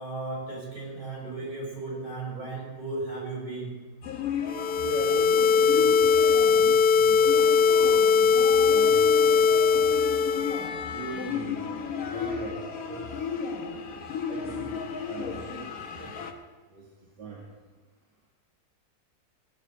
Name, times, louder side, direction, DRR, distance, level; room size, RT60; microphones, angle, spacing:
voice 1, 0.0-3.8, right 3 dB, 55° right, -4 dB, 7.0 m, -35 dB
sound 1, 4.0-16.3, left 6 dB, 60° left, 1.6 m, -34 dB
sound 2, 4.5-10.7, left 6 dB, 90° left, 0.5 m, -20 dB
voice 2, 4.8-6.0 6.5-7.2 7.8-9.8 10.1-10.2 10.9-11.6 12.0-13.3 14.3-16.1 16.7-16.9 17.2-17.4, right 3 dB, 80° right, -4 dB, 2.8 m, -40 dB
17.5 x 6.2 x 9.1 m, 1.3 s
omnidirectional pair, 1.8 m